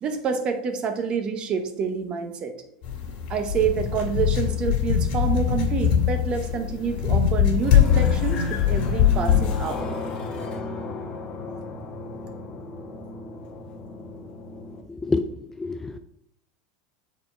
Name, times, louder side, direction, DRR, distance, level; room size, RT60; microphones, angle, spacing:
voice 1, 0.0-2.5 3.3-9.9, right 6 dB, 30° right, 7 dB, 0.8 m, -27 dB
sound 1, 2.8-9.8, left 9 dB, 50° left, 2.2 m, -22 dB
sound 2, 6.3-14.8, left 2 dB, 30° left, 1.2 m, -35 dB
voice 2, 15.6-16.0, left 3 dB, 10° left, 8 dB, 0.3 m, -26 dB
6.8 x 4.2 x 4.3 m, 0.78 s
supercardioid pair, 135°, 3 cm